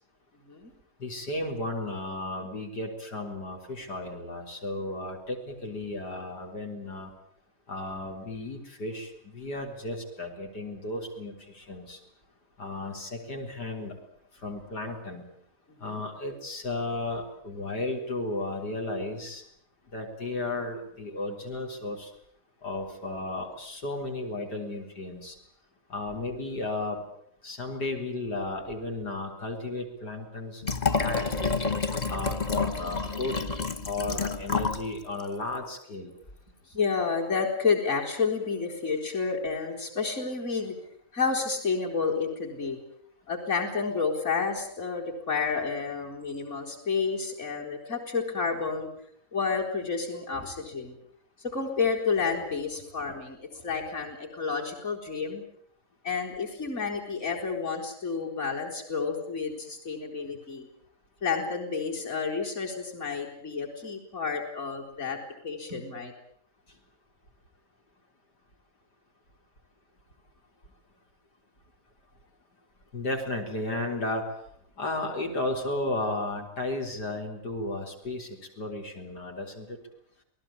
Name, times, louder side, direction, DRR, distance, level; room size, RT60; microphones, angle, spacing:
voice 1, 1.0-7.1 7.7-12.0 12.6-14.0 14.4-15.2 15.8-19.4 19.9-22.1 22.6-25.4 25.9-27.1 27.4-30.6 30.9-31.5 32.1-33.4 33.9-36.1 72.9-74.2 74.8-79.8, left 2 dB, 80° left, 2 dB, 4.5 m, -34 dB
Liquid, 30.6-34.9 35.2-35.3, left 4 dB, 30° left, 1.2 m, -29 dB
voice 2, 36.7-40.7 41.1-42.8 43.3-48.9 49.3-51.0 51.4-55.4 56.0-60.7 61.2-65.2 65.4-66.1, left 5 dB, 45° left, 2 dB, 4.6 m, -30 dB
27.5 x 19.0 x 8.7 m, 0.66 s
omnidirectional pair, 1.8 m